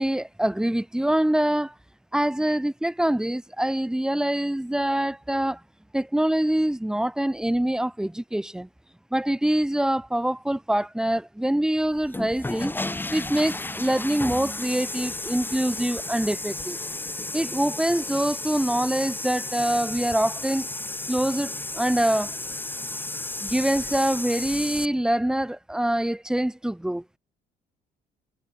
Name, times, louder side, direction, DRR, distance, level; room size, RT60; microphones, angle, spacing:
voice 1, 0.0-1.7 2.1-5.6 5.9-8.7 9.1-12.7 13.1-16.8 17.3-20.7 21.1-22.3 23.4-27.0, right 1 dB, 5° right, 1.4 m, -25 dB
sound 1, 12.0-24.9, left 2 dB, 10° left, 4.3 m, -33 dB
cardioid pair, 110°, 17 cm